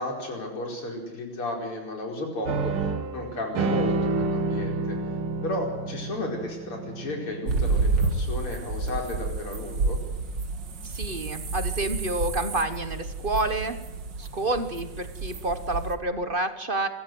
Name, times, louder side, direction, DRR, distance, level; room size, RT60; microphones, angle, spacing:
voice 1, 0.0-2.7 3.1-5.0 5.4-10.0, left 1 dB, 80° left, 1 dB, 5.7 m, -33 dB
sound 1, 2.5-8.2, right 3 dB, 80° right, 2.3 m, -29 dB
sound 2, 7.5-16.0, right 3 dB, 55° right, 2.3 m, -30 dB
voice 2, 10.8-13.8 14.2-16.9, right 2 dB, 30° right, 10 dB, 1.1 m, -29 dB
25.5 x 13.5 x 7.9 m, 1.1 s
omnidirectional pair, 2.4 m